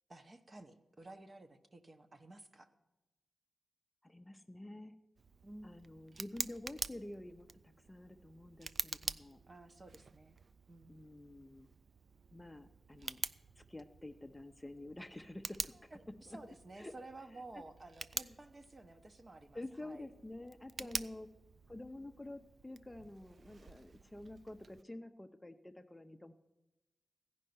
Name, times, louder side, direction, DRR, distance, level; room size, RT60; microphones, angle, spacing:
voice 1, 0.1-2.7 5.4-5.8 9.5-10.4 10.7-11.0 15.9-20.1 20.8-21.1, right 2 dB, 35° right, 7 dB, 0.9 m, -53 dB
voice 2, 4.0-5.0 5.6-7.5 7.9-9.4 10.9-11.7 12.3-13.2 13.6-15.9 16.3-16.4 16.8-16.9 17.5-17.6 18.1-18.3 19.5-21.3 21.7-26.3, left 1 dB, 15° left, 7 dB, 0.5 m, -49 dB
Tick, 5.2-24.8, right 4 dB, 50° right, 0.3 m, -47 dB
15.5 x 5.4 x 9.3 m, 1.1 s
wide cardioid pair, 85°, 0 cm